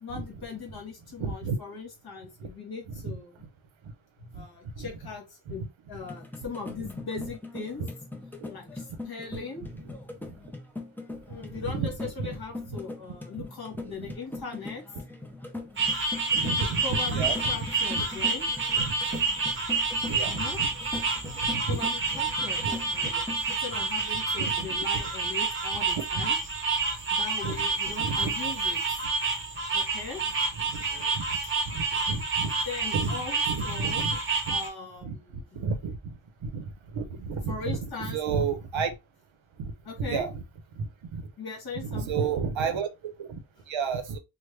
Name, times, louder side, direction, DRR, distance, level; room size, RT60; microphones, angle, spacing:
voice 1, 0.0-3.4 4.2-7.8 8.5-9.6 11.3-14.8 16.4-18.8 20.2-20.6 21.5-23.2 23.6-26.4 27.1-29.0 29.7-30.3 32.6-34.1 34.5-35.6 37.5-38.2 39.8-40.3 41.4-42.3 43.6-43.7, left 4 dB, 50° left, 1.3 m, -40 dB
voice 2, 1.2-1.6 2.4-2.5 3.0-3.1 4.4-4.5 4.8-4.9 6.8-6.9 11.6-11.9 12.2-12.3 16.3-17.5 18.0-18.1 18.8-19.2 20.0-20.7 21.2-21.8 22.6-22.7 23.0-23.1 24.4-24.7 24.9-25.0 27.4-27.6 28.0-28.3 30.6-31.4 31.7-32.5 32.9-33.2 33.5-34.2 34.5-34.6 35.0-36.0 36.4-37.8 38.1-38.9 39.6-39.7 40.0-40.4 40.8-41.2 41.8-43.4 43.7-44.2, right 5 dB, 70° right, 0.7 m, -32 dB
sound 1, 6.0-23.5, left 2 dB, 5° left, 0.3 m, -41 dB
sound 2, 15.8-34.7, right 3 dB, 25° right, 0.8 m, -29 dB
3.2 x 2.1 x 3.1 m
wide cardioid pair, 160°, 49 cm